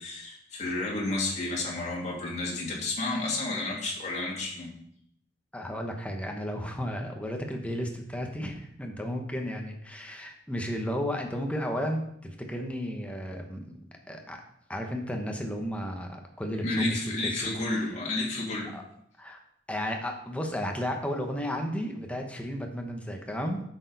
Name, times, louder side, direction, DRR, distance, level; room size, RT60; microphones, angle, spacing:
voice 1, 0.0-4.7 16.6-18.8, left 2 dB, 40° left, -4 dB, 2.5 m, -31 dB
voice 2, 5.5-13.8 14.1-14.4 14.7-17.5 18.7-18.8 19.2-19.4 19.7-23.6, equal, 5° left, 2 dB, 1.1 m, -33 dB
8.4 x 6.5 x 4.1 m, 0.70 s
head